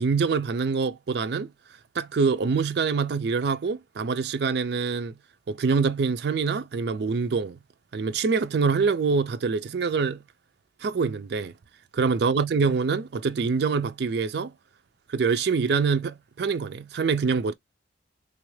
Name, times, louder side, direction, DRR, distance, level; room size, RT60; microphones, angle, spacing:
voice 1, 0.0-1.5 2.0-5.1 5.5-7.6 7.9-10.2 10.8-11.5 11.9-14.5 15.1-17.5, right 5 dB, 60° right, 0.4 m, -25 dB
3.3 x 2.5 x 3.1 m
head